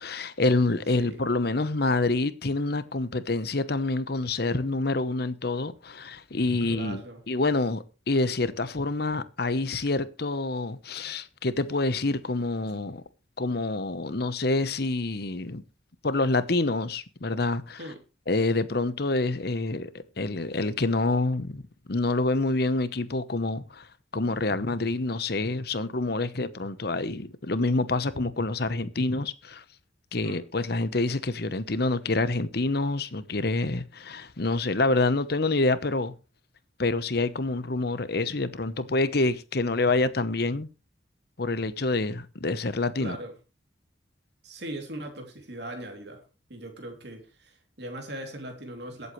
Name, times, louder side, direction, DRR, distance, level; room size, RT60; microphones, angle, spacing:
voice 1, 0.0-13.0 13.4-15.6 16.0-17.8 18.3-19.9 20.2-21.6 21.9-23.9 24.1-29.6 30.1-36.1 36.8-40.7 41.4-43.2, left 2 dB, 55° left, 0.9 m, -27 dB
voice 2, 6.6-7.2 11.0-11.1 12.6-12.7 17.8-18.0 30.2-30.4 43.0-43.3 44.4-46.2 46.5-49.1, right 1 dB, 60° right, 3.0 m, -39 dB
22.5 x 8.2 x 3.2 m
head